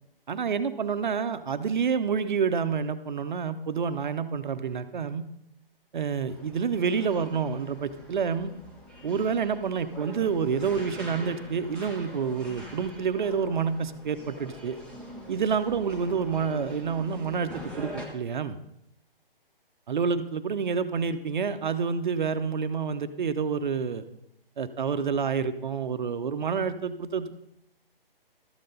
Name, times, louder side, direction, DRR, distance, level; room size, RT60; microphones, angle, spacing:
voice 1, 0.3-5.2 5.9-8.5 9.0-14.8 15.3-18.6 19.9-24.1 24.6-27.3, right 6 dB, 55° right, 10 dB, 0.8 m, -28 dB
sound 1, 6.3-18.1, equal, 5° left, 0.8 m, -44 dB
12.5 x 7.6 x 3.9 m, 0.78 s
figure-of-eight pair, 145°, 29 cm